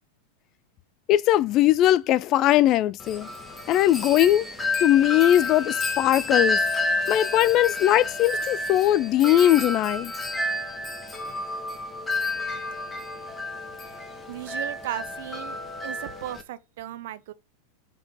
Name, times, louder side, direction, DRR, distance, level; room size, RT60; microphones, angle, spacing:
voice 1, 1.1-3.3 3.7-4.4 4.8-6.6 7.1-10.1, left 13 dB, 35° left, 0.4 m, -20 dB
Wind chime, 3.0-16.4, left 2 dB, 15° left, 1.5 m, -30 dB
voice 2, 14.3-15.6 15.8-17.3, right 14 dB, 55° right, 0.6 m, -36 dB
6.5 x 4.5 x 5.4 m
figure-of-eight pair, 90°, 0 cm